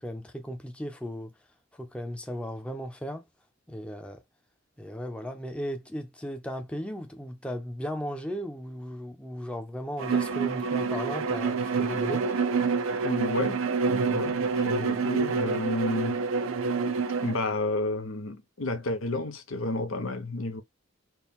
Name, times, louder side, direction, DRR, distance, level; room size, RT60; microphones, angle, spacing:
voice 1, 0.0-1.3 1.7-3.3 3.7-4.2 4.8-12.3, equal, 5° left, 0.6 m, -36 dB
Bowed string instrument, 10.0-17.4, right 4 dB, 80° right, 0.5 m, -27 dB
voice 2, 13.0-13.6 14.1-16.2 17.2-20.6, left 2 dB, 90° left, 0.8 m, -31 dB
4.4 x 2.2 x 3.6 m
head